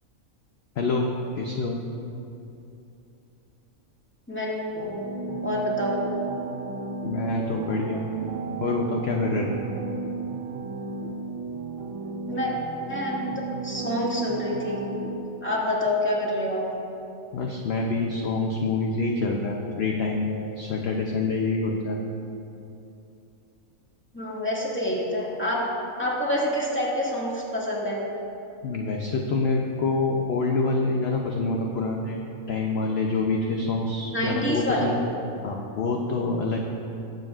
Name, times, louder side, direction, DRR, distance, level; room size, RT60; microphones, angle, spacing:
voice 1, 0.8-1.8 7.0-8.0 8.6-9.6 17.3-22.0 28.6-32.2 32.5-34.9 35.4-36.6, left 3 dB, 55° left, 0 dB, 0.9 m, -26 dB
sound 1, 4.7-15.2, right 4 dB, 60° right, 1.4 m, -34 dB
voice 2, 5.4-6.0 12.3-12.5 12.9-14.8 15.4-16.7 24.1-25.6 26.0-28.0 34.0-34.9, left 1 dB, 10° left, -6 dB, 1.9 m, -27 dB
19.5 x 7.8 x 2.5 m, 2.8 s
omnidirectional pair, 1.5 m